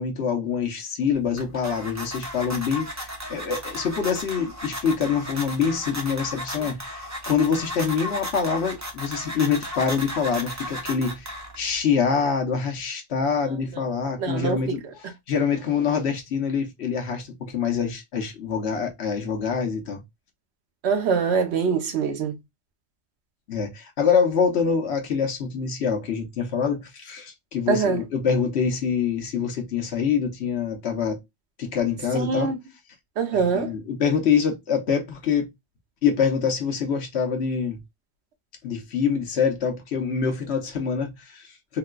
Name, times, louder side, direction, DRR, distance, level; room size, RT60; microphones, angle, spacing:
voice 1, 0.0-20.0 23.5-31.2 31.6-32.5 33.3-35.5 36.0-37.8 38.6-41.8, left 6 dB, 60° left, 1.0 m, -25 dB
sound 1, 1.1-11.8, equal, 20° right, 0.6 m, -35 dB
voice 2, 14.2-14.6 20.8-22.4 27.7-28.0 32.1-32.6 33.2-33.7, right 5 dB, 60° right, 0.9 m, -24 dB
3.7 x 2.2 x 2.2 m
omnidirectional pair, 1.3 m